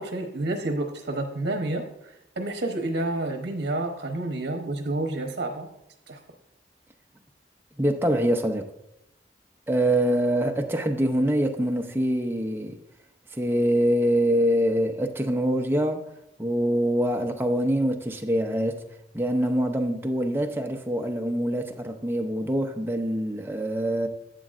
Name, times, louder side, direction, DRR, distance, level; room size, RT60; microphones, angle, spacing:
voice 1, 0.0-5.7 6.1-6.2, right 2 dB, 75° right, 0.9 m, -29 dB
voice 2, 7.8-8.7 9.7-12.8 13.3-16.1 16.4-18.9 19.1-24.1, equal, 15° right, 0.6 m, -24 dB
11.5 x 8.1 x 2.5 m
head